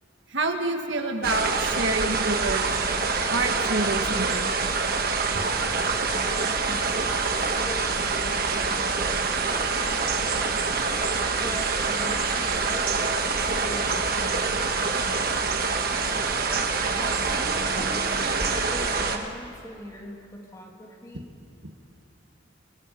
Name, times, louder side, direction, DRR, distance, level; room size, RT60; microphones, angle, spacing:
voice 1, 0.3-2.7 3.3-4.5 21.6-21.7, right 2 dB, 70° right, 4 dB, 1.7 m, -28 dB
sound 1, 1.2-19.2, right 4 dB, 45° right, 1.3 m, -26 dB
voice 2, 5.3-5.7 6.1-9.8 10.9-15.7 16.9-21.3, equal, 15° left, 0 dB, 2.4 m, -41 dB
28.5 x 19.0 x 5.4 m, 2.5 s
head